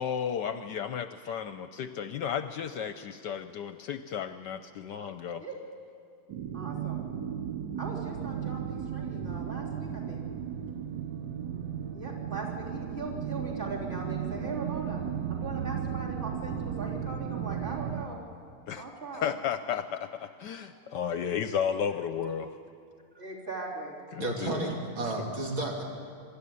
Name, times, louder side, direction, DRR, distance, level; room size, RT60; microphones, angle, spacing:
voice 1, 0.0-5.4 18.7-18.8 19.1-22.6 24.1-24.7, left 8 dB, 70° left, 10 dB, 1.1 m, -33 dB
sound 1, 6.3-18.1, right 8 dB, 65° right, 1.4 m, -35 dB
voice 2, 6.5-7.0 7.8-10.2 11.9-15.0 15.3-18.2 18.8-19.3 23.2-24.0 25.2-25.3, right 3 dB, 25° right, -4 dB, 3.7 m, -40 dB
voice 3, 24.2-25.8, right 2 dB, 80° right, -1 dB, 3.7 m, -32 dB
24.5 x 12.5 x 9.5 m, 2.3 s
omnidirectional pair, 2.2 m